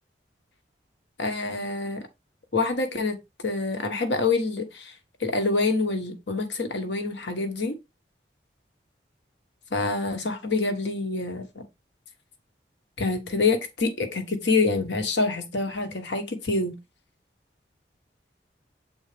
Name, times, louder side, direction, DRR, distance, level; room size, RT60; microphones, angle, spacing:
voice 1, 1.2-2.0 2.5-3.2 3.4-4.9 5.2-7.8 9.7-11.6 13.0-16.7, left 3 dB, 80° left, 1.3 m, -26 dB
7.2 x 4.1 x 3.3 m
head